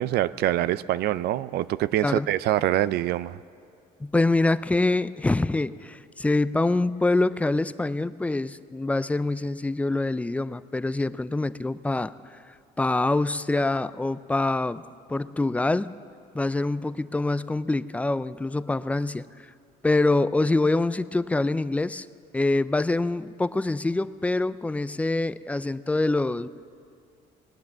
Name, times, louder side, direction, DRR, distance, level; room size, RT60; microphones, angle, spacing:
voice 1, 0.0-3.4, right 13 dB, 70° right, 17 dB, 0.4 m, -25 dB
voice 2, 4.0-12.1 12.8-14.8 15.1-15.9 16.3-19.2 19.8-22.1 22.3-26.5, left 2 dB, 10° left, 16 dB, 0.3 m, -25 dB
19.0 x 9.5 x 7.4 m, 2.4 s
cardioid pair, 110°, 17 cm